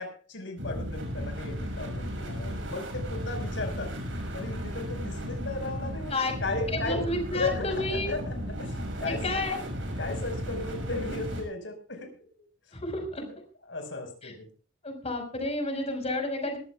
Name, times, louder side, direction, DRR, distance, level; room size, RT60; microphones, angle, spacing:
voice 1, 0.0-3.9 4.3-7.1 7.3-9.2 10.0-12.2 13.2-13.4 13.7-14.5, left 3 dB, 70° left, 5 dB, 5.2 m, -35 dB
sound 1, 0.6-11.4, equal, 75° right, 5.7 m, -35 dB
voice 2, 6.7-8.1 9.0-9.6 12.7-13.2 14.2-14.3 14.8-16.6, left 2 dB, 35° left, 5 dB, 5.1 m, -31 dB
22.5 x 14.5 x 2.4 m, 0.39 s
head